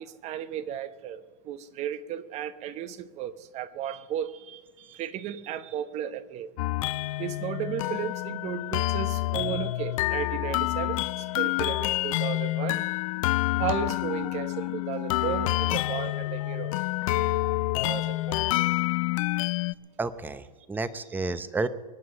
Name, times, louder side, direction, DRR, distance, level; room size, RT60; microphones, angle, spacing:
voice 1, 0.0-6.5 7.2-12.8 13.6-16.8 17.7-18.7, right 10 dB, 35° right, 1.0 m, -35 dB
sound 1, 6.6-19.7, left 18 dB, 55° left, 0.6 m, -28 dB
sound 2, 13.1-18.9, left 9 dB, 85° left, 1.2 m, -47 dB
voice 2, 20.0-21.7, right 3 dB, 10° right, 0.8 m, -31 dB
24.0 x 9.5 x 5.4 m
hypercardioid pair, 125°, 20 cm